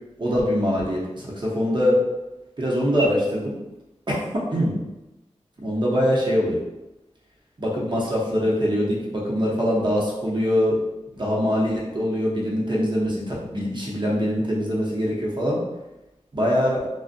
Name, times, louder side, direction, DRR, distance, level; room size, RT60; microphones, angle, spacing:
voice 1, 0.2-2.0 2.6-3.6 4.1-4.8 5.6-6.6 7.6-10.8 11.2-15.6 16.3-16.9, equal, 40° right, -4 dB, 0.7 m, -23 dB
2.5 x 2.1 x 2.4 m, 0.99 s
wide cardioid pair, 65°, 12 cm